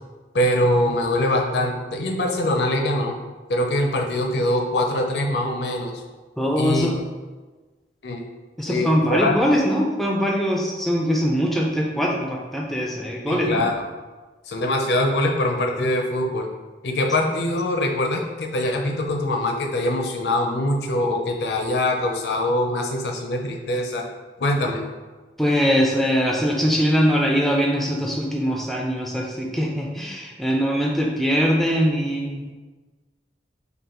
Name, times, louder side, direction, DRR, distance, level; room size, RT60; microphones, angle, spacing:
voice 1, 0.3-3.1 3.5-5.9 6.6-6.9 8.0-8.2 8.6-9.3 13.3-13.8 14.5-16.5 16.8-24.0 24.4-24.8, left 1 dB, 75° left, 2 dB, 0.5 m, -23 dB
voice 2, 6.4-6.9 8.6-13.6 25.4-32.5, equal, ahead, -1 dB, 0.3 m, -22 dB
5.3 x 2.2 x 2.9 m, 1.3 s
head